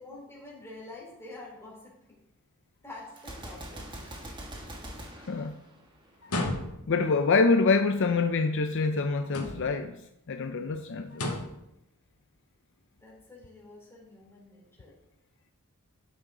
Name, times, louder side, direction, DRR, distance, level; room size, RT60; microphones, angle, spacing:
voice 1, 0.0-2.2 2.8-4.9 13.0-15.0, left 2 dB, 10° left, -5 dB, 3.8 m, -48 dB
Gunshot gunfire, 3.2-6.3, right 1 dB, 20° right, 1.5 m, -43 dB
sound 1, 6.2-7.0 9.2-9.9 11.1-11.6, left 1 dB, 90° left, 1.9 m, -33 dB
voice 2, 6.9-9.9 10.3-11.2, left 4 dB, 55° left, 7 dB, 0.6 m, -25 dB
12.0 x 6.9 x 3.8 m, 0.83 s
head